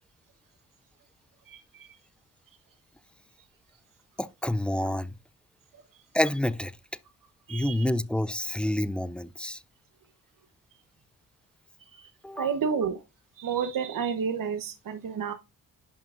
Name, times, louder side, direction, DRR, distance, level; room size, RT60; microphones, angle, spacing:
voice 1, 1.5-2.0 7.5-7.9 12.0-12.1 12.4-13.0 13.4-15.3, right 6 dB, 55° right, 1.0 m, -30 dB
voice 2, 4.2-5.1 6.1-6.7 7.5-9.6 12.2-12.5, left 1 dB, 5° left, 0.3 m, -28 dB
11.0 x 5.6 x 2.4 m
cardioid pair, 110°, 39 cm